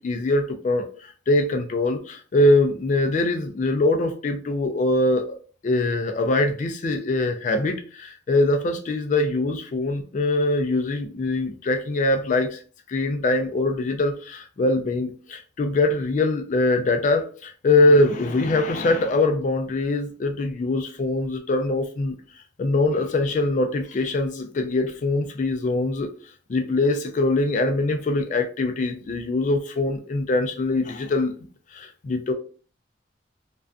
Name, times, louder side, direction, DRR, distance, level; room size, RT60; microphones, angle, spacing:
voice 1, 0.0-5.4 5.6-12.6 12.9-22.2 22.6-26.1 26.5-31.4 31.7-32.3, left 2 dB, 40° left, 0.3 m, -23 dB
2.4 x 2.2 x 2.4 m
head